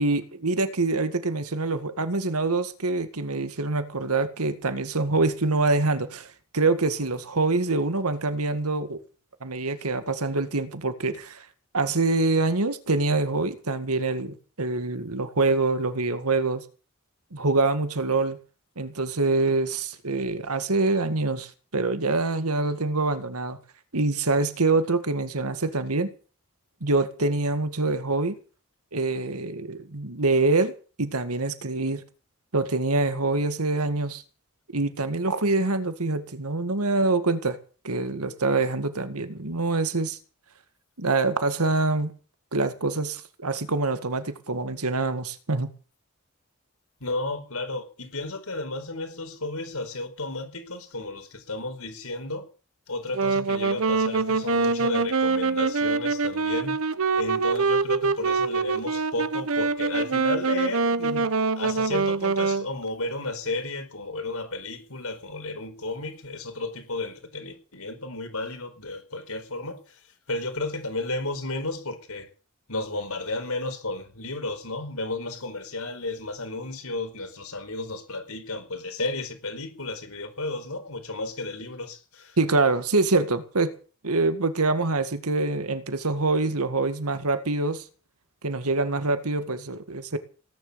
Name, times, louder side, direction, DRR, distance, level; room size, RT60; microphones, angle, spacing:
voice 1, 0.0-9.0 9.4-11.5 11.7-16.6 17.3-18.4 18.8-23.6 23.9-26.1 26.8-28.4 28.9-30.7 31.0-32.0 32.5-34.2 34.7-37.6 37.8-40.2 41.0-42.1 42.5-45.7 82.4-83.7 84.0-87.8 88.4-90.2, right 3 dB, 90° right, 1.9 m, -25 dB
voice 2, 47.0-52.5 52.9-56.8 57.1-61.3 61.6-70.0 70.3-72.3 72.7-82.4, left 2 dB, 80° left, 4.7 m, -33 dB
Wind instrument woodwind instrument, 53.1-62.7, right 4 dB, 70° right, 1.0 m, -24 dB
18.5 x 10.5 x 7.0 m
head